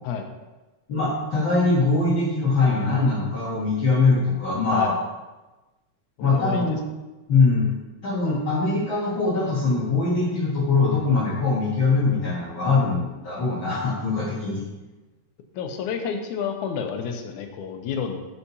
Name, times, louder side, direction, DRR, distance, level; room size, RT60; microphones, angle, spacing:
voice 1, 0.9-5.0 6.2-6.8 7.3-7.7 8.0-14.6, left 3 dB, 50° left, -7 dB, 1.9 m, -22 dB
voice 2, 6.2-6.8 15.6-18.2, left 6 dB, 85° left, 5 dB, 2.2 m, -30 dB
11.0 x 5.8 x 2.8 m, 1.1 s
omnidirectional pair, 3.4 m